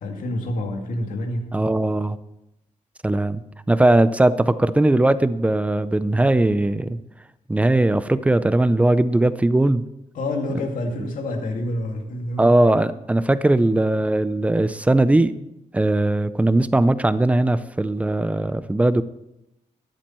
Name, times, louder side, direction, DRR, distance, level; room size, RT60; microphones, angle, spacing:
voice 1, 0.0-1.5 10.1-12.5, left 1 dB, 80° left, 3 dB, 2.2 m, -28 dB
voice 2, 1.5-2.2 3.0-3.4 3.7-7.0 7.5-9.8 11.0-11.1 12.4-15.3 15.7-19.0, right 2 dB, 10° right, 15 dB, 0.5 m, -19 dB
13.0 x 10.5 x 4.4 m, 0.87 s
wide cardioid pair, 135°, 14 cm